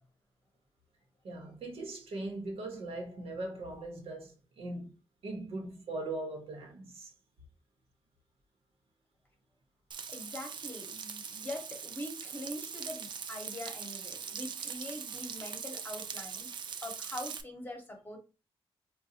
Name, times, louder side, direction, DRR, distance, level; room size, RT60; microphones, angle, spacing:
voice 1, 1.2-4.9 5.2-7.1, right 2 dB, 80° right, 1.0 m, -40 dB
Frying (food), 9.9-17.4, right 6 dB, 50° right, 0.4 m, -41 dB
voice 2, 10.1-16.5 16.8-18.2, left 1 dB, 20° left, 1.0 m, -43 dB
3.8 x 2.3 x 2.8 m
wide cardioid pair, 140°, 10 cm